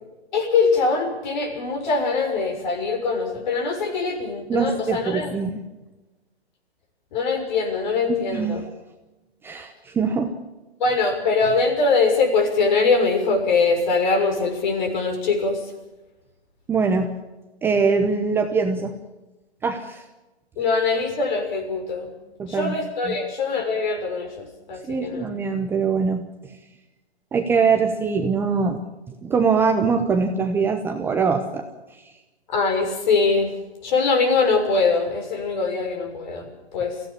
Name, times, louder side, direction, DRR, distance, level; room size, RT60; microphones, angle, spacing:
voice 1, 0.3-5.3 7.1-8.6 10.8-15.6 20.6-22.1 22.5-25.3 32.5-33.5 33.8-36.9, left 4 dB, 45° left, 6 dB, 6.3 m, -22 dB
voice 2, 4.5-5.6 8.3-8.6 9.4-10.3 16.7-17.1 17.6-18.9 19.6-20.0 22.4-22.7 23.0-23.1 24.8-26.2 27.3-28.8 29.2-31.6, right 5 dB, 5° right, 4 dB, 0.9 m, -22 dB
23.5 x 16.5 x 7.4 m, 1.1 s
hypercardioid pair, 145°, 33 cm